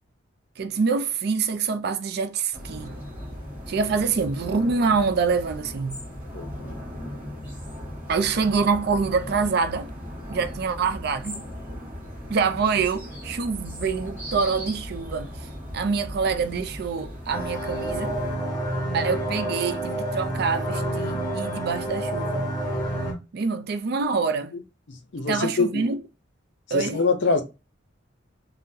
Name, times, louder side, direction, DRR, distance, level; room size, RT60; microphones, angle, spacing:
voice 1, 0.6-2.9 3.7-6.0 8.1-9.9 10.3-11.4 12.3-15.3 15.7-18.2 18.9-22.5 23.3-24.5 25.3-26.0 26.7-27.0, right 5 dB, 55° right, 0.4 m, -25 dB
sound 1, 2.5-18.4, equal, 10° right, 1.3 m, -38 dB
voice 2, 6.3-6.8 24.5-24.6 24.9-25.8 26.7-27.4, left 4 dB, 65° left, 0.6 m, -25 dB
sound 2, 17.3-23.1, right 1 dB, 20° left, 1.2 m, -28 dB
3.6 x 2.1 x 2.6 m
head